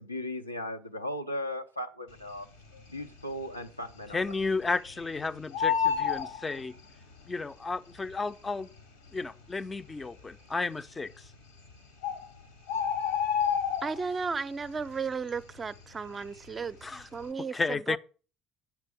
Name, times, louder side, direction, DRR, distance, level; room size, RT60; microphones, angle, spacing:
voice 1, 0.0-2.5 2.9-4.2, left 1 dB, 90° left, 0.5 m, -37 dB
Bird, 2.6-3.2 3.5-3.6 3.9-5.1 5.4-7.2 8.0-8.1 8.8-8.9 9.1-9.2 9.8-10.3 11.2-11.3 11.7-11.8 12.0-14.3 14.6-15.0 15.3-16.7 17.0-17.2, left 7 dB, 70° left, 1.0 m, -30 dB
voice 2, 4.1-6.7 7.3-8.7 9.1-11.3 16.8-17.1 17.5-18.0, left 3 dB, 20° left, 0.5 m, -33 dB
voice 3, 13.8-18.0, right 5 dB, 30° right, 0.5 m, -34 dB
8.1 x 5.8 x 5.7 m
figure-of-eight pair, 55°, 0 cm